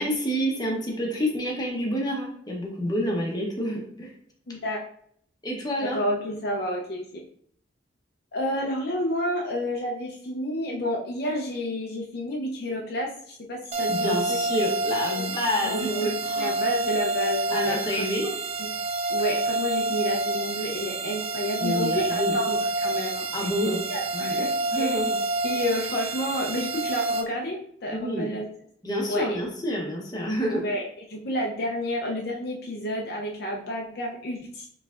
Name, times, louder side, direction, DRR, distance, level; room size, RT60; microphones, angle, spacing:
voice 1, 0.0-4.1 5.4-6.0 13.9-16.5 17.5-18.3 21.6-22.4 23.3-23.8 24.1-24.4 24.7-25.2 27.9-28.3 28.8-30.7, equal, 20° left, -2 dB, 0.8 m, -28 dB
voice 2, 4.5-4.8 5.8-7.0 8.3-14.4 15.1-15.3 15.6-18.1 18.6-18.7 19.1-23.3 23.6-25.0 25.4-28.5 29.1-29.4 30.5-34.6, equal, 55° left, -1 dB, 0.5 m, -30 dB
sound 1, 13.7-27.2, right 2 dB, 30° right, 0.3 m, -28 dB
4.8 x 3.2 x 2.4 m, 0.63 s
head